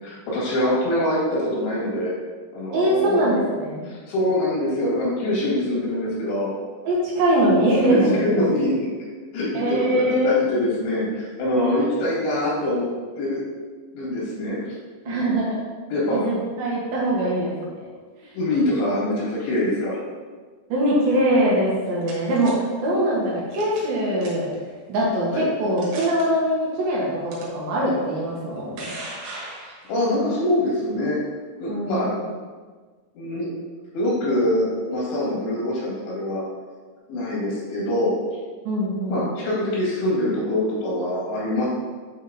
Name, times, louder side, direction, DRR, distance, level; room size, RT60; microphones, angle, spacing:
voice 1, 0.0-2.1 2.5-3.2 3.9-6.5 7.4-7.5 7.9-8.9 9.3-12.9 13.2-13.4 13.9-14.6 15.1-15.4 15.9-16.3 18.3-20.0 25.3-25.5 29.6-31.2 31.6-32.2 33.2-33.5 33.9-36.4 37.1-38.1 39.1-41.7, left 1 dB, 85° left, -6 dB, 4.4 m, -24 dB
voice 2, 2.7-3.8 6.8-8.2 9.5-10.4 15.1-15.6 16.1-17.9 20.7-22.5 22.8-24.5 24.9-28.9 31.7-32.1 38.6-39.3, right 1 dB, 70° right, -6 dB, 2.9 m, -22 dB
sound 1, 21.6-22.5 23.5-23.9 24.2-24.6 25.2-25.3 25.8-26.2 27.3-27.4 28.4-30.1, right 2 dB, 85° right, 3.7 m, -38 dB
8.9 x 3.6 x 4.0 m, 1.4 s
omnidirectional pair, 5.0 m